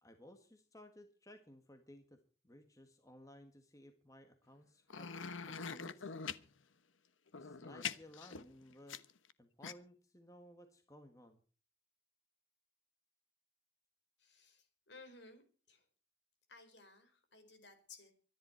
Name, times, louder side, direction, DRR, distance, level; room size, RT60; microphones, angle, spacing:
voice 1, 0.0-6.1 7.4-9.0 9.4-11.4, left 1 dB, 15° left, 6 dB, 1.6 m, -58 dB
sound 1, 4.9-6.4 7.3-9.3 9.6-9.7, left 6 dB, 80° left, 1.1 m, -43 dB
voice 2, 14.2-15.9 16.5-18.1, left 3 dB, 60° left, 8 dB, 4.6 m, -59 dB
24.5 x 11.0 x 4.4 m, 0.38 s
head